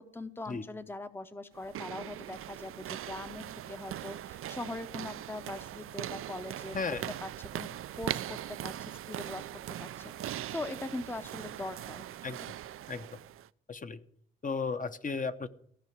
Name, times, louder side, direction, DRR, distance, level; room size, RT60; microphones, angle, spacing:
voice 1, 0.0-7.7 8.0-9.4 9.8-12.1, left 2 dB, 10° left, 11 dB, 0.7 m, -41 dB
sound 1, 1.5-13.5, right 12 dB, 85° right, 0.5 m, -40 dB
voice 2, 6.7-7.1 12.2-12.4 12.9-13.1 13.7-14.0 14.4-15.5, left 4 dB, 40° left, 10 dB, 0.9 m, -34 dB
15.5 x 5.7 x 9.3 m, 0.64 s
cardioid pair, 105°, 21 cm